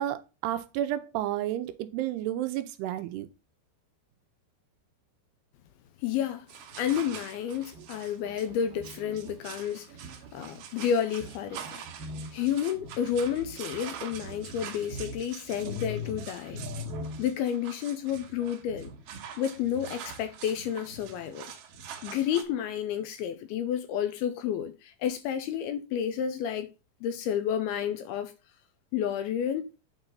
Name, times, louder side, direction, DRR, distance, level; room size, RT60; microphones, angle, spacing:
voice 1, 0.0-3.3, right 12 dB, 85° right, 2.6 m, -31 dB
voice 2, 6.0-6.5 6.8-10.0 10.3-11.9 12.3-16.6 17.2-18.9 19.4-21.5 22.0-26.7 27.0-28.3 28.9-29.7, left 9 dB, 80° left, 2.4 m, -30 dB
sound 1, 6.5-22.4, right 2 dB, 70° right, 2.3 m, -42 dB
8.9 x 4.0 x 5.4 m
omnidirectional pair, 4.9 m